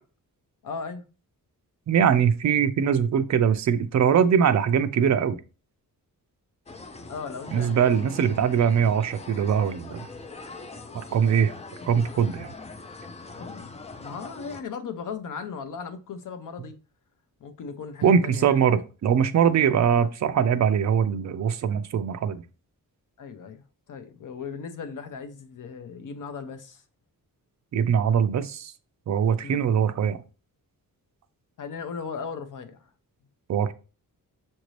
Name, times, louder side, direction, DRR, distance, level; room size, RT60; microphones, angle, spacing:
voice 1, 0.6-1.0 7.1-8.4 13.3-16.8 17.4-18.6 23.2-23.6 23.9-26.8 29.4-29.6 31.6-32.9, left 5 dB, 60° left, 0.7 m, -37 dB
voice 2, 1.9-5.4 7.5-10.1 10.9-11.5 11.8-12.5 18.0-22.4 27.7-28.7 29.1-30.2 33.5-33.7, right 7 dB, 50° right, 0.4 m, -22 dB
sound 1, 6.7-14.6, left 3 dB, 20° left, 0.3 m, -42 dB
5.8 x 2.7 x 3.1 m
wide cardioid pair, 175°, 35 cm